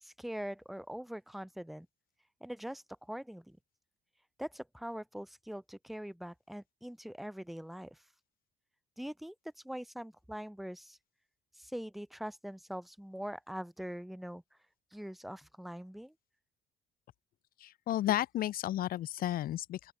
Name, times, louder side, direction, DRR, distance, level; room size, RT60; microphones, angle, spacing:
voice 1, 0.0-1.9 2.4-3.6 4.4-8.0 9.0-9.3 9.6-11.0 11.6-14.4 14.9-16.1, equal, ahead, 0.5 m, -43 dB
voice 2, 17.6-19.9, left 13 dB, 60° left, 0.8 m, -33 dB
open air
cardioid pair, 110°, 17 cm